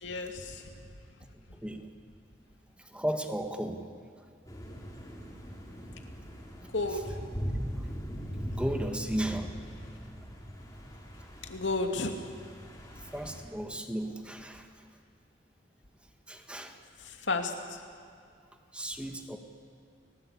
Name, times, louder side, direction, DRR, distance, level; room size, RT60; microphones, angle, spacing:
voice 1, 0.0-0.6 6.7-7.2 11.5-12.3 17.0-17.6, left 3 dB, 80° left, 5 dB, 2.6 m, -32 dB
voice 2, 2.8-3.9 6.9-7.0 7.8-7.9 8.3-9.5 13.1-14.9 16.3-16.8 18.7-19.4, right 1 dB, 5° right, 5 dB, 1.7 m, -35 dB
sound 1, 4.5-13.4, equal, 20° left, 4.3 m, -40 dB
30.0 x 19.5 x 8.7 m, 2.3 s
head